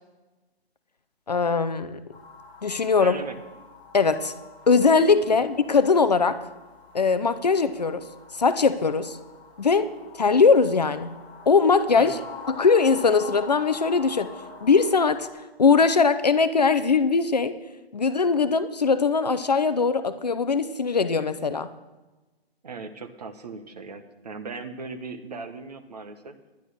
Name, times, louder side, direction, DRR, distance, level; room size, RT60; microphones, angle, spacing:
voice 1, 1.3-2.0 2.6-3.2 3.9-4.3 4.7-6.4 6.9-8.1 8.4-9.2 9.6-9.9 10.2-11.1 11.5-12.2 12.5-14.3 14.6-15.3 15.6-17.6 17.9-21.7, left 5 dB, 40° left, 11 dB, 0.6 m, -21 dB
sound 1, 2.1-15.3, left 5 dB, 10° left, 2.7 m, -44 dB
voice 2, 3.0-3.4 12.0-12.3 22.6-26.4, right 4 dB, 40° right, 8 dB, 1.1 m, -38 dB
10.5 x 10.5 x 6.3 m, 1.1 s
hypercardioid pair, 175°, 31 cm